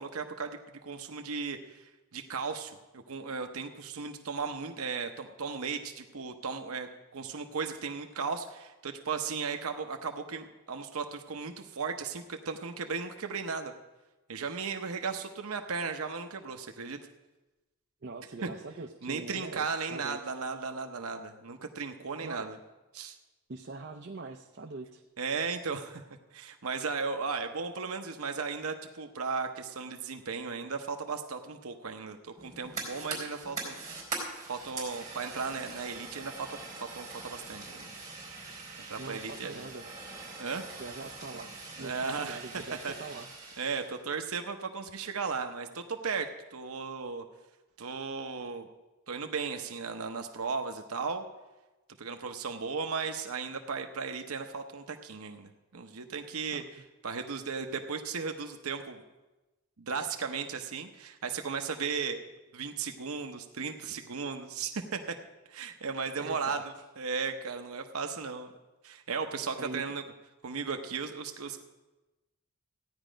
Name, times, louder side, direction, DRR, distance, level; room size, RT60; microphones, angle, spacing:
voice 1, 0.0-1.8 2.1-2.8 3.1-13.7 14.3-17.0 18.4-18.5 19.0-22.6 22.9-23.2 25.2-26.0 26.3-33.7 34.5-36.5 36.9-37.9 38.9-39.7 40.4-40.7 41.8-42.9 43.6-47.2 47.8-48.7 49.1-51.2 52.0-56.6 57.0-59.0 59.8-62.2 62.5-65.1 65.5-66.6 67.0-68.5 68.8-70.0 70.4-71.6, right 5 dB, 80° right, 5 dB, 0.8 m, -36 dB
voice 2, 18.0-20.2 22.2-22.5 23.5-25.0 39.0-39.9 40.8-43.3 56.5-56.6 66.2-66.7 69.5-69.9, right 3 dB, 50° right, 4 dB, 0.6 m, -43 dB
Fire, 32.4-43.9, right 3 dB, 15° right, 3.8 m, -43 dB
15.5 x 10.0 x 5.1 m, 1.1 s
head